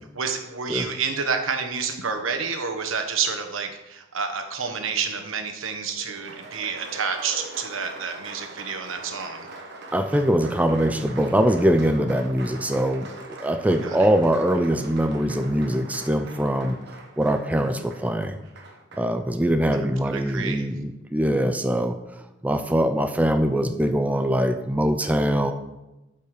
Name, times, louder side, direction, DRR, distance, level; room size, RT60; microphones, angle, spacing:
voice 1, 0.1-9.5 13.8-14.1 19.7-20.6, right 5 dB, 85° right, 6 dB, 1.2 m, -29 dB
Applause, 5.9-19.1, right 3 dB, 60° right, 1.4 m, -42 dB
voice 2, 9.9-16.8 17.2-18.4 19.0-22.0 22.4-25.5, equal, 10° right, 7 dB, 0.4 m, -22 dB
8.7 x 5.4 x 6.5 m, 1.0 s
head